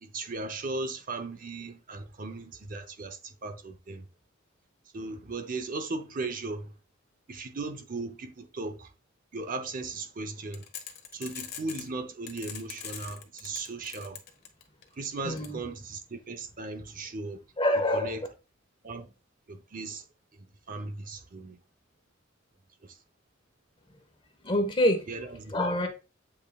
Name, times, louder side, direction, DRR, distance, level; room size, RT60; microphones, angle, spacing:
voice 1, 0.0-4.0 4.9-6.7 7.3-8.9 9.3-10.6 11.1-14.2 15.0-17.4 17.9-18.2 18.8-19.1 19.5-20.0 20.7-21.6 25.1-25.5, right 3 dB, 45° right, 0.7 m, -37 dB
sound 1, 10.5-11.9 12.3-14.8 15.4-15.5, left 9 dB, 55° left, 1.3 m, -41 dB
voice 2, 15.2-15.6 17.6-18.3 24.4-25.0 25.5-25.9, left 1 dB, 25° left, 1.2 m, -26 dB
8.4 x 5.7 x 2.3 m
head